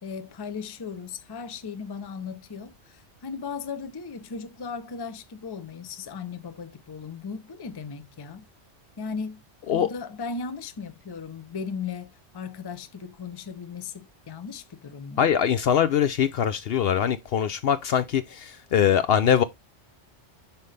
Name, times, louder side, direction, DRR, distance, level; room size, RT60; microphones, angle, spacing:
voice 1, 0.0-8.4 9.0-9.4 9.7-15.2, left 5 dB, 30° left, 0.5 m, -37 dB
voice 2, 15.2-19.4, left 8 dB, 65° left, 0.7 m, -22 dB
5.7 x 5.4 x 3.2 m
omnidirectional pair, 1.2 m